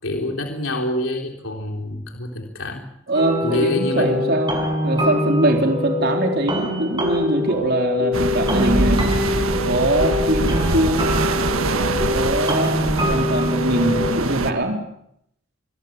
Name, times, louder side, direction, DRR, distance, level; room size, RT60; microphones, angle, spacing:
voice 1, 0.0-2.8 3.4-4.4, left 1 dB, 75° left, 2 dB, 3.5 m, -26 dB
sound 1, 3.1-14.1, left 2 dB, 20° right, 6.1 m, -24 dB
voice 2, 3.1-9.0 9.7-11.2 12.1-14.8, right 1 dB, 50° right, 3 dB, 4.0 m, -22 dB
sound 2, 8.1-14.5, right 3 dB, 85° right, 1.5 m, -23 dB
26.5 x 22.0 x 7.4 m, 0.74 s
head